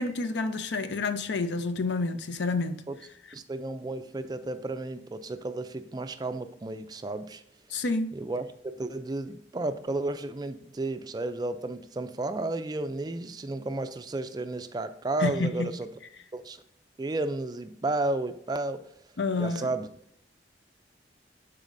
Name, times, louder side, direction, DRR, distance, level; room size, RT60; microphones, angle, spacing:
voice 1, 0.0-2.8 7.7-8.1 15.2-15.7 19.2-19.7, left 3 dB, 75° left, 0.6 m, -29 dB
voice 2, 3.3-7.4 8.1-8.5 8.8-15.9 16.3-16.6 17.0-18.9 19.4-19.9, right 2 dB, 20° right, 0.3 m, -32 dB
12.5 x 4.1 x 2.6 m
head